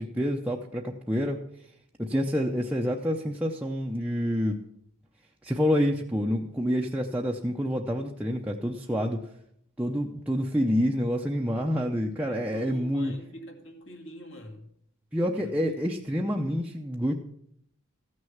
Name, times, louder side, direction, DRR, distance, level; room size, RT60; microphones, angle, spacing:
voice 1, 0.0-1.4 2.0-4.6 5.4-9.2 9.8-13.1 15.1-17.1, equal, 5° right, -1 dB, 0.6 m, -28 dB
voice 2, 12.2-14.7 15.4-15.8, equal, 60° left, 3 dB, 2.2 m, -45 dB
14.5 x 6.4 x 7.1 m, 0.73 s
head